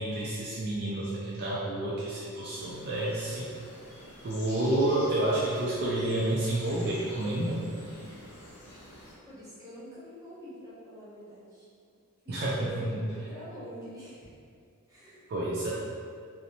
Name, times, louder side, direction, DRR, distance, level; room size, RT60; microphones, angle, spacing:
voice 1, 0.0-3.5 4.2-7.6 12.3-12.5 15.3-15.7, right 1 dB, 45° right, -7 dB, 0.3 m, -29 dB
sound 1, 2.5-9.1, left 1 dB, 80° left, 0.7 m, -49 dB
voice 2, 9.2-11.7 12.2-14.3 14.9-15.3, equal, 15° right, -11 dB, 0.8 m, -45 dB
2.8 x 2.0 x 2.6 m, 2.3 s
head